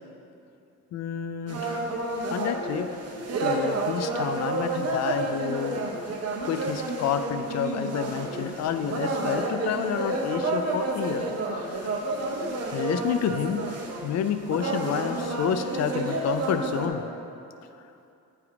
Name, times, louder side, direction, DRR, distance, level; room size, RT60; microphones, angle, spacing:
voice 1, 0.9-1.9 2.3-2.9 3.4-5.8 6.4-12.0 12.7-13.6 14.0-17.0, left 8 dB, 60° left, 9 dB, 0.5 m, -29 dB
sound 1, 1.5-16.9, right 2 dB, 55° right, 0.9 m, -30 dB
9.2 x 3.5 x 4.8 m, 2.7 s
cardioid pair, 90°, 30 cm